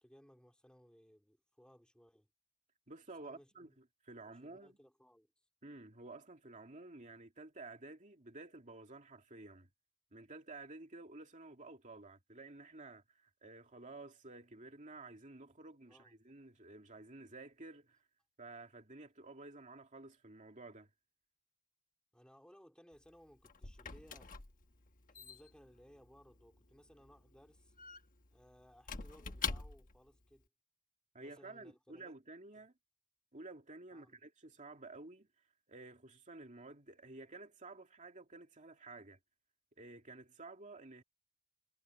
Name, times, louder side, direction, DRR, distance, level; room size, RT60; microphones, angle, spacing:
voice 1, 0.0-2.3 3.2-3.8 4.3-5.3 15.9-16.2 22.1-24.4 25.2-27.7 28.3-30.5 31.2-32.2 33.9-34.2, equal, 5° left, 3.6 m, -63 dB
voice 2, 2.9-4.8 5.6-9.7 10.1-18.0 18.4-20.9 31.1-32.7 33.3-35.3 35.7-39.2 39.8-41.0, right 2 dB, 35° right, 2.5 m, -52 dB
Squeak / Wood, 22.9-30.1, left 5 dB, 40° left, 1.2 m, -46 dB
head